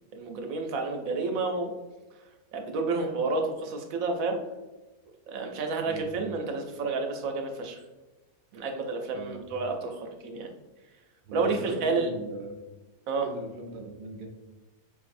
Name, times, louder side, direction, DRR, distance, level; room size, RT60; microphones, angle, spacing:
voice 1, 0.2-1.7 2.5-4.4 5.3-7.8 8.5-10.5 11.3-12.1 13.1-13.3, right 3 dB, 70° right, 3 dB, 0.9 m, -30 dB
voice 2, 9.1-9.5 11.2-12.6 13.2-14.3, right 3 dB, 90° right, 0 dB, 0.4 m, -40 dB
4.6 x 2.6 x 2.5 m, 1.1 s
omnidirectional pair, 1.6 m